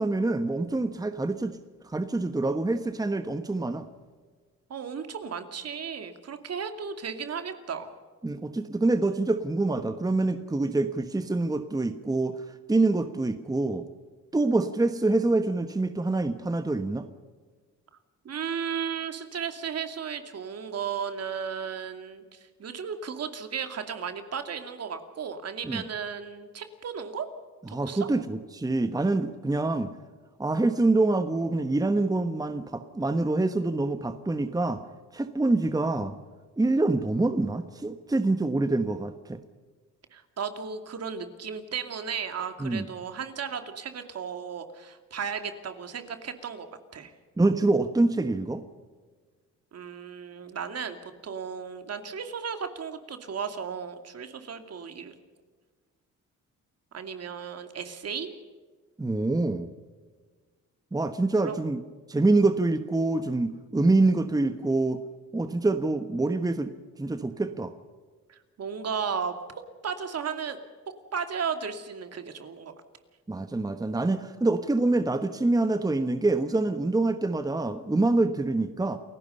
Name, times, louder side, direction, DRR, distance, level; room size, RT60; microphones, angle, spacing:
voice 1, 0.0-1.6 1.8-3.9 8.2-12.4 12.7-13.8 14.3-17.1 25.6-25.8 27.7-29.9 30.4-34.8 35.1-36.2 36.6-39.4 42.6-42.9 47.4-48.6 59.0-59.7 60.9-61.8 62.1-65.0 65.3-66.7 67.0-67.7 73.3-79.0, right 2 dB, 10° right, 10 dB, 1.1 m, -26 dB
voice 2, 4.7-7.9 18.2-27.3 27.7-28.1 40.1-46.7 46.9-47.1 49.7-51.0 51.2-55.1 56.9-58.3 61.4-61.6 68.3-69.4 69.8-70.6 71.1-72.7, right 6 dB, 55° right, 8 dB, 2.5 m, -35 dB
29.0 x 16.0 x 5.5 m, 1.5 s
cardioid pair, 90°, 30 cm